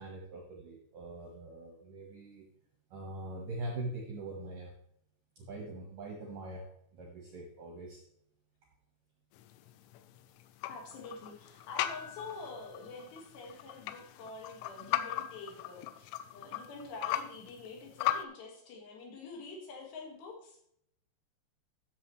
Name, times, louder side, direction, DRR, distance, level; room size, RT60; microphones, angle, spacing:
voice 1, 0.0-2.5 2.9-4.7 5.4-6.7 6.9-8.0, right 2 dB, 70° right, 0 dB, 2.1 m, -42 dB
sound 1, 9.3-18.3, left 13 dB, 85° left, 3.1 m, -38 dB
voice 2, 10.7-16.1 16.3-20.6, left 3 dB, 65° left, 0 dB, 3.8 m, -46 dB
13.5 x 7.4 x 3.2 m, 0.71 s
omnidirectional pair, 5.6 m